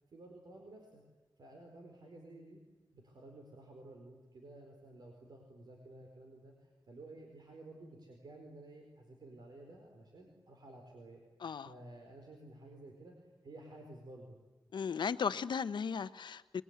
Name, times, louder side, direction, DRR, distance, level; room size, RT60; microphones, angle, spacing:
voice 1, 0.1-1.0 1.4-2.6 2.9-11.2 11.6-13.1 13.4-14.4, right 2 dB, 60° right, 2 dB, 4.5 m, -53 dB
voice 2, 11.4-11.7 14.7-16.6, left 6 dB, 75° left, 13 dB, 1.0 m, -36 dB
26.5 x 22.0 x 9.7 m, 1.1 s
wide cardioid pair, 130°, 8 cm